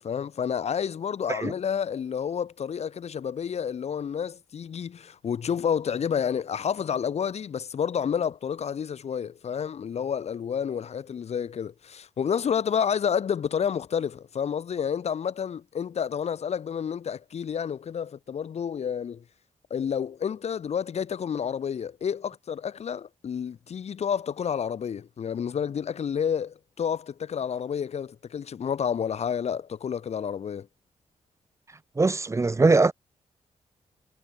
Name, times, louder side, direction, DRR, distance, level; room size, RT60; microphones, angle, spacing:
voice 1, 0.0-19.2 19.7-30.7, left 7 dB, 65° left, 3.7 m, -30 dB
voice 2, 32.0-32.9, right 3 dB, 25° right, 1.6 m, -21 dB
wide cardioid pair, 120°, 12 cm